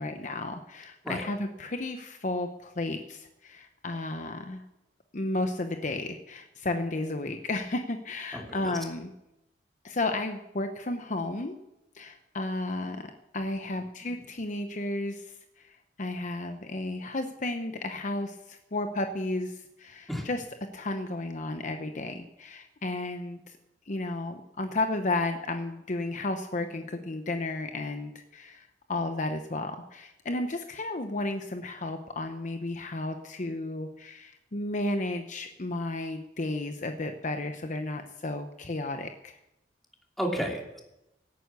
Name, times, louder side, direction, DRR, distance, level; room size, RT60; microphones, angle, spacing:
voice 1, 0.0-4.6 5.1-9.1 9.8-11.6 11.9-20.4 20.7-23.4 23.9-39.4, left 2 dB, 45° left, 6 dB, 0.9 m, -33 dB
voice 2, 8.3-8.8 14.0-14.2 20.1-20.3 40.2-40.8, equal, ahead, 0 dB, 2.8 m, -33 dB
17.0 x 9.5 x 6.9 m, 0.89 s
head